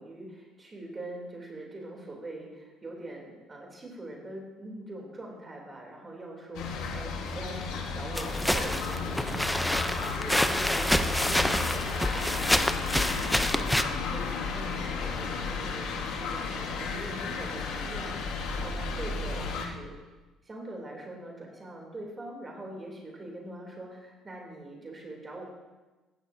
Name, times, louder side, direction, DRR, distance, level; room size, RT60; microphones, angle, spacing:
voice 1, 0.0-19.9 20.4-25.5, right 1 dB, 25° right, 0 dB, 3.2 m, -43 dB
sound 1, 6.5-19.7, left 4 dB, 75° left, 1.5 m, -33 dB
sound 2, 8.1-13.8, left 1 dB, 5° left, 0.7 m, -27 dB
15.5 x 12.5 x 2.8 m, 1.2 s
supercardioid pair, 90°, 0 cm